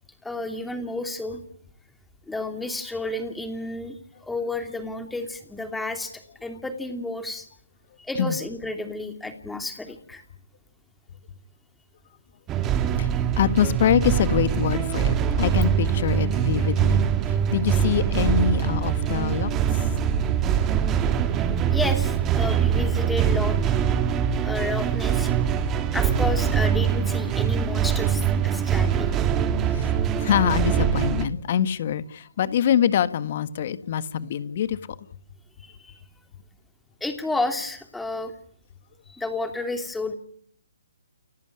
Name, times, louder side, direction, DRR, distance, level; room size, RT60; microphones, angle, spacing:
voice 1, 0.2-1.4 2.3-7.5 8.0-10.2 19.1-19.2 21.7-23.6 24.4-25.3 25.9-29.1 35.6-36.0 37.0-38.3 39.1-40.2, left 2 dB, 5° left, 7 dB, 2.9 m, -31 dB
sound 1, 12.5-31.2, right 8 dB, 20° right, 2.4 m, -23 dB
voice 2, 13.4-19.8 24.3-24.4 29.7-29.9 30.2-35.1, left 9 dB, 45° left, 14 dB, 1.6 m, -25 dB
29.5 x 14.5 x 9.8 m, 0.63 s
figure-of-eight pair, 135°, 0 cm